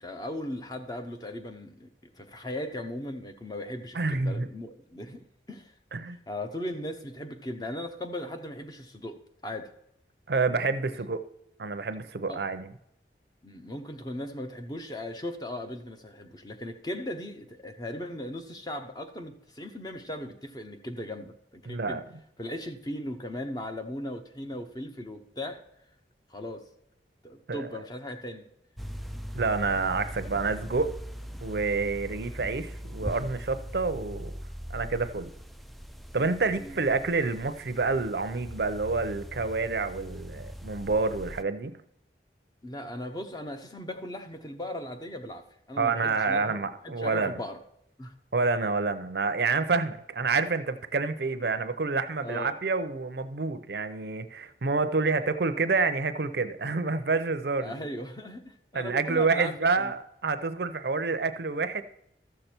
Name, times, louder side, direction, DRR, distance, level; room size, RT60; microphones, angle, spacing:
voice 1, 0.0-5.2 5.5-5.7 6.0-9.7 12.3-12.4 13.4-22.0 22.4-25.7 26.3-26.7 27.2-28.5 36.6-36.8 42.6-47.6 48.0-48.1 52.2-52.5 57.6-59.9, left 1 dB, 20° left, 0.8 m, -38 dB
voice 2, 3.9-4.5 5.9-6.2 10.3-11.2 11.6-12.7 21.7-22.0 27.5-27.7 29.3-30.9 31.4-34.3 34.7-35.3 36.1-41.8 45.8-47.3 48.3-57.8 58.7-61.8, right 4 dB, 65° right, 0.6 m, -28 dB
sound 1, 28.8-41.4, equal, ahead, 0.3 m, -41 dB
13.5 x 6.7 x 4.4 m
head